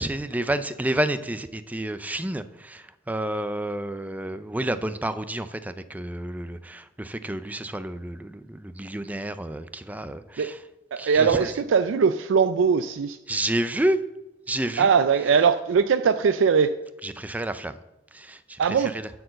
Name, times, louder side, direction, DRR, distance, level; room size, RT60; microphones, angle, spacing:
voice 1, 0.0-10.6 11.0-11.5 13.3-14.0 14.5-14.9 17.0-17.8 18.1-19.1, right 1 dB, 10° right, 12 dB, 0.4 m, -30 dB
voice 2, 10.9-13.2 14.8-16.7 18.6-18.9, right 6 dB, 75° right, 9 dB, 0.4 m, -21 dB
10.0 x 4.7 x 7.6 m, 0.98 s
head